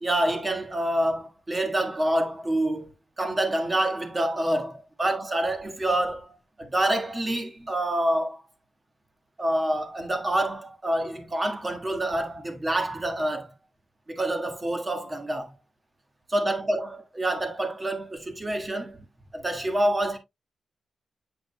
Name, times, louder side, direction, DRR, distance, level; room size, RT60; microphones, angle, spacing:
voice 1, 0.0-8.4 9.4-13.5 14.1-15.5 16.3-19.0 19.3-20.2, right 1 dB, 25° right, 1.6 m, -27 dB
8.9 x 5.2 x 2.2 m
wide cardioid pair, 105°, 0 cm